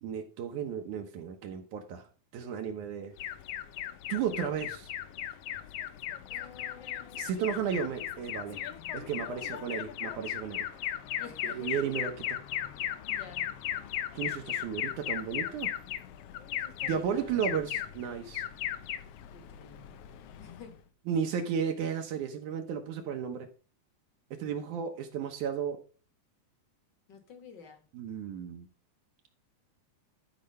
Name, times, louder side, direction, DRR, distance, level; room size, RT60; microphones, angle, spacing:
voice 1, 0.0-2.0 2.3-3.1 4.1-4.9 7.1-8.6 8.9-10.7 11.4-12.4 14.1-15.7 16.8-18.4 21.1-23.5 24.3-25.8 27.9-28.7, right 7 dB, 75° right, 4 dB, 2.4 m, -34 dB
Alarm, 3.2-20.8, left 11 dB, 85° left, 1.3 m, -37 dB
voice 2, 6.3-7.3 9.3-9.6 11.2-11.7 13.1-13.4 16.3-17.8 19.3-20.0 20.4-20.7 27.1-27.8, left 6 dB, 40° left, 5 dB, 2.1 m, -51 dB
12.5 x 5.0 x 5.4 m, 0.37 s
omnidirectional pair, 3.6 m